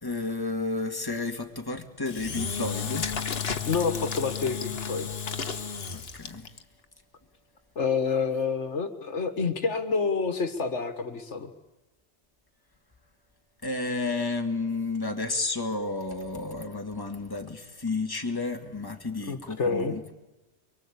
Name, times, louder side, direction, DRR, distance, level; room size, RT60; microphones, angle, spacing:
voice 1, 0.0-3.1 5.9-6.5 13.6-20.1, left 3 dB, 20° left, 4 dB, 2.0 m, -32 dB
Engine / Drill, 2.1-6.6, left 6 dB, 60° left, 1.5 m, -32 dB
voice 2, 3.6-5.1 7.8-11.5 19.3-20.0, left 5 dB, 75° left, 9 dB, 1.8 m, -28 dB
24.0 x 23.5 x 8.6 m, 1.1 s
omnidirectional pair, 1.2 m